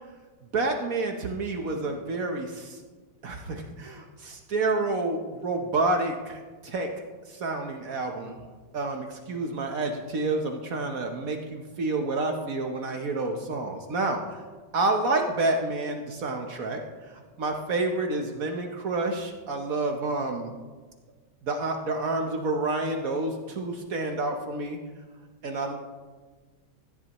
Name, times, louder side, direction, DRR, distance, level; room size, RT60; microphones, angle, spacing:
voice 1, 0.5-2.8 3.2-6.9 7.3-8.4 8.7-14.2 14.7-16.8 17.1-20.5 21.5-24.8 25.4-25.7, right 2 dB, 60° right, 3 dB, 0.9 m, -29 dB
15.0 x 10.5 x 3.0 m, 1.3 s
omnidirectional pair, 2.4 m